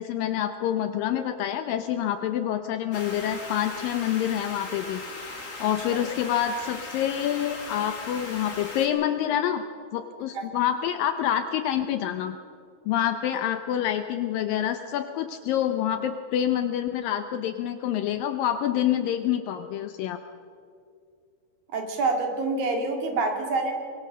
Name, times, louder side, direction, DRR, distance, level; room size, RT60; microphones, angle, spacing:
voice 1, 0.0-5.0 5.6-9.6 9.9-12.4 12.9-20.2, left 10 dB, 75° left, 8 dB, 2.3 m, -27 dB
sound 1, 2.9-8.9, left 3 dB, 25° left, 2.4 m, -38 dB
voice 2, 21.7-23.7, right 3 dB, 65° right, 3 dB, 4.0 m, -26 dB
23.0 x 22.5 x 6.7 m, 2.3 s
omnidirectional pair, 4.4 m